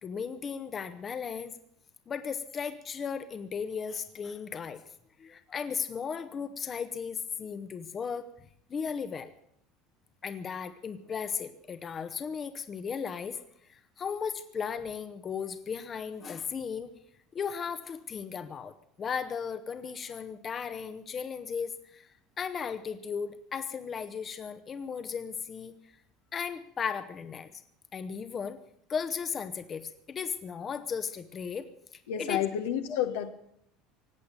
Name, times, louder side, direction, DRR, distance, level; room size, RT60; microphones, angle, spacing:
voice 1, 0.0-1.5 2.1-4.8 5.2-8.3 8.7-9.3 10.2-16.9 17.3-25.8 26.3-27.6 27.9-28.6 28.9-31.7 32.2-32.4, left 6 dB, 35° left, 10 dB, 1.2 m, -36 dB
voice 2, 32.1-33.3, left 10 dB, 75° left, 6 dB, 1.4 m, -30 dB
18.5 x 8.4 x 9.1 m, 0.70 s
hypercardioid pair, 75°, 0 cm